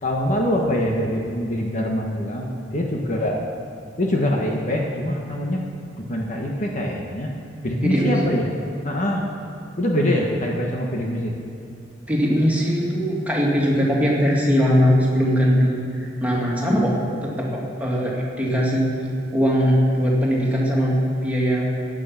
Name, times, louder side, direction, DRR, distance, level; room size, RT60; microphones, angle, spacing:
voice 1, 0.0-3.4 4.0-5.6 6.0-7.3 7.6-8.5 8.8-9.2 9.8-11.3, equal, 40° left, 0 dB, 1.4 m, -24 dB
voice 2, 7.8-8.2 12.1-21.7, equal, 10° right, -5 dB, 2.7 m, -20 dB
16.0 x 9.2 x 5.9 m, 2.8 s
head